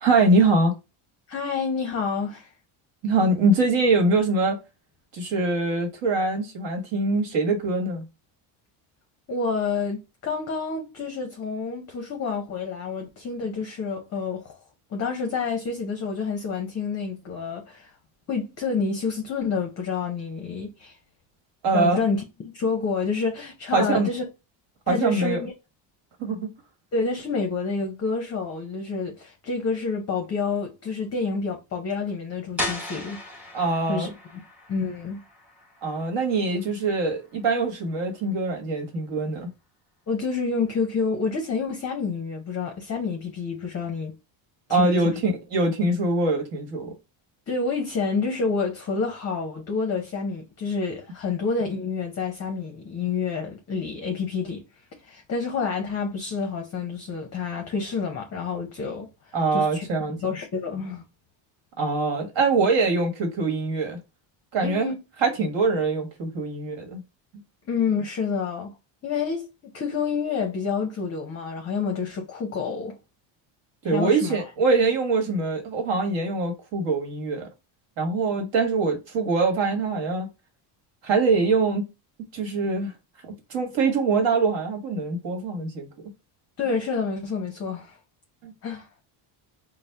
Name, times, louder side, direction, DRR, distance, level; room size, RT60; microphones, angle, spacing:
voice 1, 0.0-0.7 3.0-4.6 5.1-8.0 21.6-22.0 23.7-24.1 24.9-25.4 26.2-26.5 33.5-34.1 35.8-39.5 44.7-46.9 59.3-60.2 61.8-64.0 64.5-64.9 65.2-67.0 73.8-77.5 78.0-80.3 81.0-81.9 82.3-82.9 83.2-85.9 88.4-88.5, right 3 dB, 60° right, 1.4 m, -23 dB
voice 2, 1.3-2.5 9.3-14.6 14.9-17.9 18.3-21.0 21.7-22.2 22.5-24.2 24.9-25.5 26.9-33.4 33.9-34.4 34.7-35.2 40.1-44.1 44.7-45.1 47.5-54.6 55.0-61.0 64.6-65.0 67.6-68.8 69.0-73.0 73.8-74.4 86.6-88.0 88.6-88.9, left 5 dB, 30° left, 0.6 m, -28 dB
sound 1, 32.6-38.2, left 1 dB, 5° right, 0.9 m, -37 dB
4.1 x 2.1 x 3.3 m
cardioid pair, 130°, 50 cm